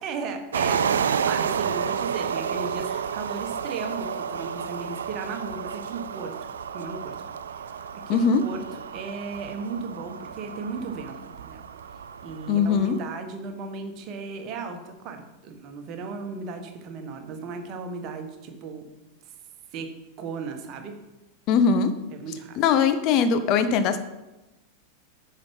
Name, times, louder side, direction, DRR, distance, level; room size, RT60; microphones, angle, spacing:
voice 1, 0.0-6.4 6.7-7.2 7.6-11.6 12.2-18.8 19.7-19.9 20.2-20.9 22.1-22.6, right 4 dB, 40° right, 5 dB, 1.5 m, -36 dB
sound 1, 0.5-13.0, right 7 dB, 65° right, 0.4 m, -31 dB
voice 2, 8.1-8.4 12.5-13.0 21.5-21.9 22.6-24.0, left 6 dB, 40° left, 10 dB, 0.7 m, -21 dB
9.7 x 5.7 x 5.4 m, 1.0 s
figure-of-eight pair, 90°, 0 cm